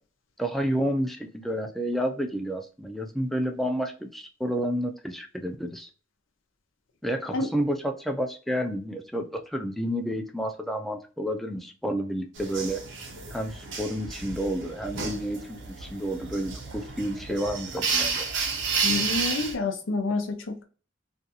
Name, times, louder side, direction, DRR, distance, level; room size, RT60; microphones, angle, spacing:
voice 1, 0.4-5.9 7.0-12.8 13.3-18.5, equal, ahead, 4 dB, 0.3 m, -30 dB
sound 1, 12.4-19.6, right 5 dB, 70° right, 0.7 m, -31 dB
voice 2, 18.8-20.6, left 3 dB, 90° left, 4 dB, 0.6 m, -28 dB
2.5 x 2.3 x 2.7 m, 0.37 s
head